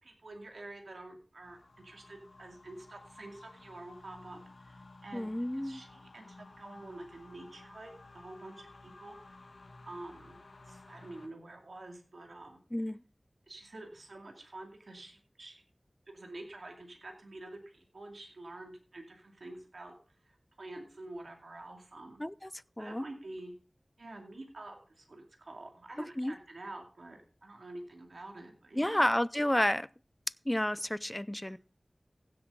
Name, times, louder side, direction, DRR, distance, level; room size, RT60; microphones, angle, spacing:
voice 1, 0.0-9.4 9.8-10.4 10.6-12.6 13.5-15.6 16.1-22.2 22.8-23.5 24.0-29.0 31.1-31.5, right 2 dB, 90° right, 2.4 m, -48 dB
sound 1, 1.4-11.3, left 2 dB, 85° left, 1.6 m, -55 dB
voice 2, 5.1-5.8 12.7-13.0 22.2-22.5 22.8-23.0 26.2-26.3 28.8-29.9 30.5-31.6, left 1 dB, 15° left, 0.5 m, -30 dB
16.0 x 7.8 x 3.8 m
wide cardioid pair, 45°, 0 cm